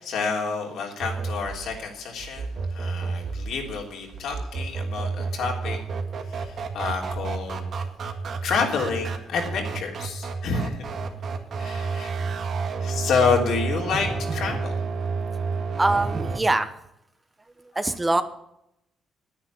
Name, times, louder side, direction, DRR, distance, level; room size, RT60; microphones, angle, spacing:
voice 1, 0.0-5.8 6.3-7.7 8.4-10.8 11.6-12.1 12.8-14.8, left 5 dB, 75° left, 1 dB, 3.4 m, -28 dB
sound 1, 1.0-16.4, right 4 dB, 60° right, 1.9 m, -30 dB
voice 2, 15.8-16.7 17.7-18.2, right 2 dB, 15° right, 10 dB, 1.0 m, -23 dB
9.8 x 9.7 x 8.1 m, 0.81 s
cardioid pair, 90°, 0 cm